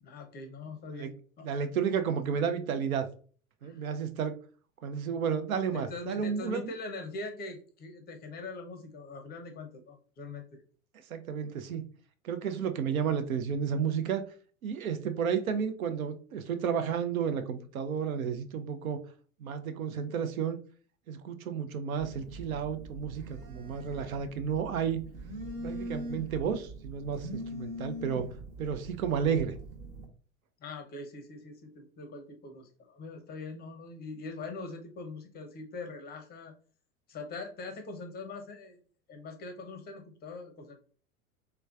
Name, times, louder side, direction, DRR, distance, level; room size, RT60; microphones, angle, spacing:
voice 1, 0.0-1.1 1.4-1.8 3.6-3.8 5.7-10.6 30.6-36.5 37.1-38.8 39.1-40.8, left 3 dB, 25° left, 6 dB, 0.5 m, -42 dB
voice 2, 1.4-3.1 3.6-4.3 4.8-6.7 11.1-11.8 12.2-14.2 14.6-19.0 19.4-20.6 21.1-25.0 25.6-28.3 28.6-29.6, right 7 dB, 75° right, 9 dB, 0.6 m, -32 dB
Telephone, 22.0-30.1, right 1 dB, 45° right, 1.1 m, -42 dB
3.3 x 3.0 x 2.3 m, 0.42 s
figure-of-eight pair, 85°, 42 cm